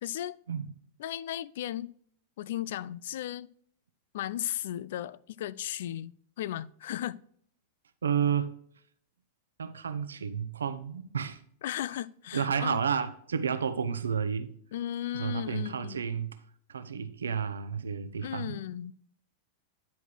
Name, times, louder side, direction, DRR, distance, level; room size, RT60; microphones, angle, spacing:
voice 1, 0.0-0.4 1.0-1.9 2.4-3.5 4.1-7.2 11.6-12.8 14.7-16.1 18.2-18.9, left 12 dB, 65° left, 0.3 m, -36 dB
voice 2, 8.0-8.5 9.6-11.4 12.3-14.5 15.1-16.4 16.7-18.6, right 7 dB, 80° right, 0.7 m, -31 dB
10.0 x 4.7 x 4.5 m
hypercardioid pair, 100°, 0 cm